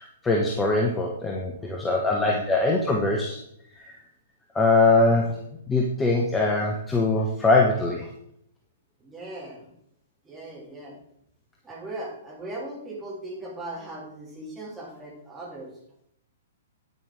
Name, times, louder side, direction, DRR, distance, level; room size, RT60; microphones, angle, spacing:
voice 1, 0.0-3.4 3.7-4.0 4.5-5.4 5.7-8.1, left 2 dB, 10° left, 0 dB, 1.1 m, -22 dB
voice 2, 1.5-2.0 9.0-9.7 10.2-11.0 11.6-15.7, right 1 dB, 10° right, -4 dB, 3.2 m, -39 dB
9.4 x 9.0 x 3.6 m, 0.73 s
figure-of-eight pair, 115°, 0 cm